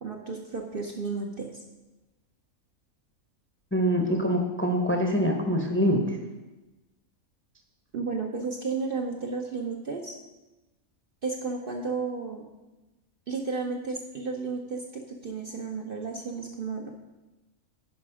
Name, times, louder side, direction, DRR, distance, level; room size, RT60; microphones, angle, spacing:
voice 1, 0.0-1.6 7.9-10.2 11.2-12.4 13.3-16.9, right 4 dB, 50° right, 1 dB, 0.8 m, -33 dB
voice 2, 3.7-6.2, equal, 10° left, 3 dB, 0.7 m, -24 dB
10.5 x 5.1 x 4.9 m, 1.1 s
omnidirectional pair, 1.5 m